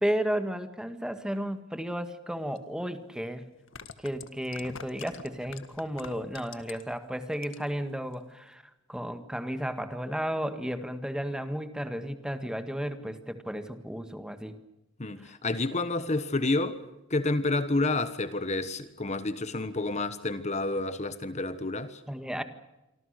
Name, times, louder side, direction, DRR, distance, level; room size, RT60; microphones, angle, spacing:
voice 1, 0.0-3.4 4.0-8.6 8.9-14.6 15.2-15.3 22.1-22.4, equal, 5° right, 1.7 m, -33 dB
sound 1, 2.6-2.7 3.5-7.0 7.3-7.8 8.1-8.2, left 5 dB, 85° left, 1.8 m, -45 dB
voice 2, 15.0-16.8 17.1-22.0, left 2 dB, 35° left, 1.3 m, -29 dB
27.5 x 25.0 x 6.6 m
head